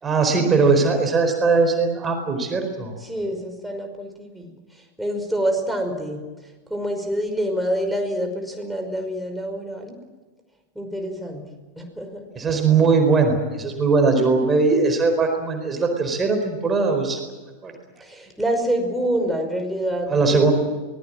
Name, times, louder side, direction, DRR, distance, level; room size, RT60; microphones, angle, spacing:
voice 1, 0.0-2.9 12.3-17.2 17.6-17.7 20.1-20.5, right 4 dB, 20° right, 4 dB, 4.6 m, -20 dB
voice 2, 3.0-10.0 10.8-11.5 11.8-12.3 18.0-20.5, equal, 5° right, 3 dB, 5.4 m, -27 dB
24.0 x 20.5 x 7.6 m, 1.2 s
figure-of-eight pair, 90°, 0 cm